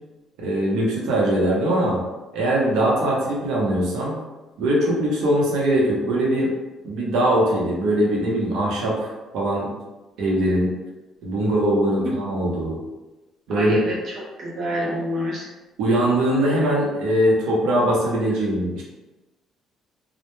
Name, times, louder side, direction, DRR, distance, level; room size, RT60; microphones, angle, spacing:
voice 1, 0.4-2.0 2.3-4.2 4.6-6.5 6.8-9.7 10.2-10.7 11.2-12.8 13.5-13.8 15.8-18.8, right 1 dB, 85° right, -4 dB, 0.7 m, -21 dB
voice 2, 13.5-14.1 14.4-15.5, equal, 40° right, -4 dB, 0.5 m, -27 dB
2.1 x 2.0 x 3.0 m, 1.1 s
cardioid pair, 170°, 0 cm